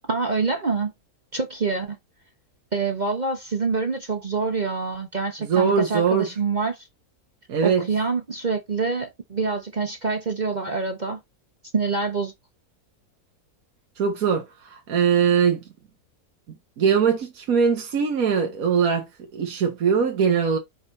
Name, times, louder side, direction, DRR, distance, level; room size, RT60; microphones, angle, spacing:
voice 1, 0.1-0.9 1.3-2.0 2.7-6.9 7.6-11.2 11.7-12.3, right 4 dB, 35° right, 0.9 m, -26 dB
voice 2, 5.4-6.3 7.5-7.9 14.0-15.6 16.8-20.6, right 6 dB, 65° right, 1.6 m, -21 dB
5.5 x 5.1 x 4.2 m
omnidirectional pair, 1.6 m